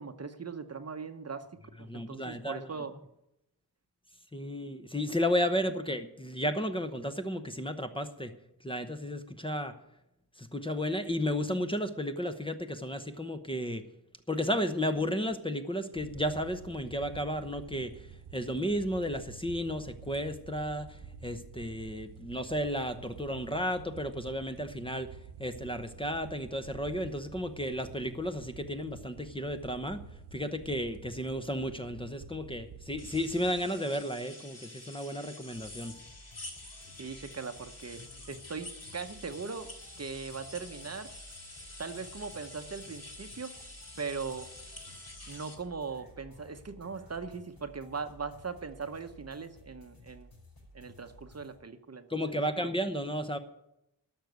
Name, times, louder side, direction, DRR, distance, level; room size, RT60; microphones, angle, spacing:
voice 1, 0.0-3.0 37.0-39.7 40.0-41.1 41.8-43.5 44.0-44.5 45.3-50.3 50.7-52.1 52.6-52.7, right 5 dB, 40° right, 9 dB, 0.9 m, -40 dB
voice 2, 1.9-2.7 4.3-8.3 8.6-9.7 10.4-13.8 14.3-18.1 18.3-25.1 25.4-30.0 30.3-35.9 52.1-53.4, equal, 15° left, 8 dB, 0.9 m, -33 dB
sound 1, 15.9-33.6, right 5 dB, 80° right, 0.9 m, -49 dB
sound 2, 33.0-45.5, left 2 dB, 40° left, 2.8 m, -48 dB
sound 3, 35.6-51.6, left 1 dB, 65° left, 5.8 m, -55 dB
12.0 x 6.5 x 9.4 m, 0.85 s
wide cardioid pair, 100°, 40 cm